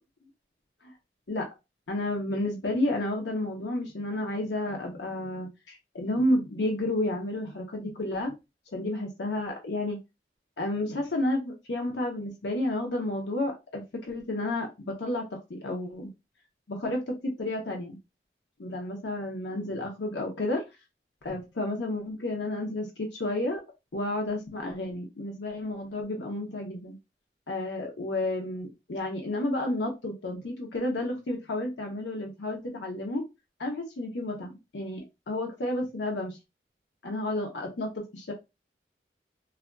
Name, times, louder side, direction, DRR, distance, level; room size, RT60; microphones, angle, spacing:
voice 1, 1.9-8.3 8.7-10.0 10.6-16.1 16.7-18.0 18.6-20.6 21.2-23.6 23.9-27.0 27.5-33.2 33.6-36.4 37.0-38.3, left 1 dB, 90° left, 1 dB, 0.7 m, -31 dB
3.5 x 2.4 x 2.2 m, 0.24 s
head